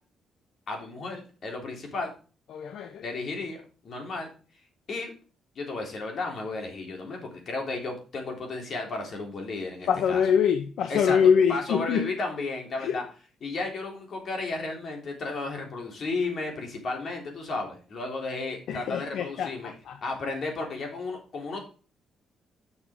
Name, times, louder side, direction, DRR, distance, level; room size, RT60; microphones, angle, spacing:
voice 1, 0.7-2.1 3.0-4.3 4.9-5.1 5.6-10.2 10.9-11.2 11.5-13.0 13.4-19.7 20.0-21.6, left 3 dB, 55° left, 3.4 m, -33 dB
voice 2, 2.5-3.0 9.9-12.1 12.8-13.0 18.7-20.0, left 7 dB, 75° left, 0.7 m, -24 dB
7.5 x 6.3 x 5.0 m
cardioid pair, 90°, 0 cm